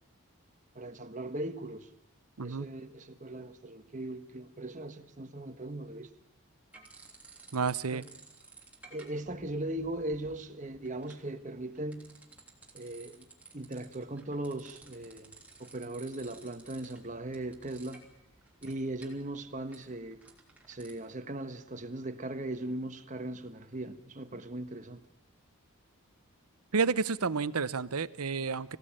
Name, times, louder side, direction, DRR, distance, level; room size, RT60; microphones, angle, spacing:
voice 1, 0.7-1.9 2.4-6.1 7.9-8.1 8.9-12.1 12.7-13.2 13.5-15.3 15.6-18.0 18.6-20.2 20.7-25.0, right 1 dB, 35° right, 1.4 m, -39 dB
sound 1, 6.7-7.8 8.0-20.9, right 3 dB, 5° right, 3.4 m, -56 dB
voice 2, 7.5-8.0 26.7-28.8, right 5 dB, 90° right, 0.9 m, -30 dB
26.0 x 16.5 x 8.9 m
head